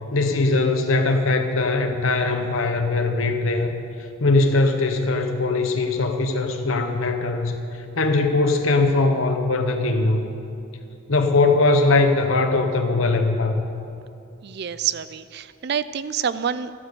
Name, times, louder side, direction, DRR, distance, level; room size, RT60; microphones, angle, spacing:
voice 1, 0.1-3.8 4.2-7.6 8.0-10.3 11.1-13.6, left 3 dB, 80° left, 5 dB, 1.0 m, -20 dB
voice 2, 14.4-16.7, right 8 dB, 55° right, 15 dB, 0.4 m, -27 dB
13.5 x 12.0 x 6.8 m, 2.6 s
head